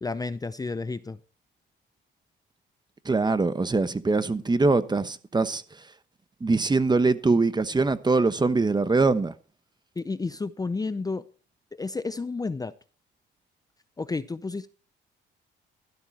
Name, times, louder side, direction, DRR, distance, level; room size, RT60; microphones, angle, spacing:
voice 1, 0.0-1.2 10.0-11.2 11.7-12.7 14.0-14.7, left 3 dB, 20° left, 0.6 m, -31 dB
voice 2, 3.0-5.6 6.4-9.3, right 3 dB, 20° right, 1.0 m, -23 dB
12.5 x 11.5 x 4.5 m
cardioid pair, 90°, 20 cm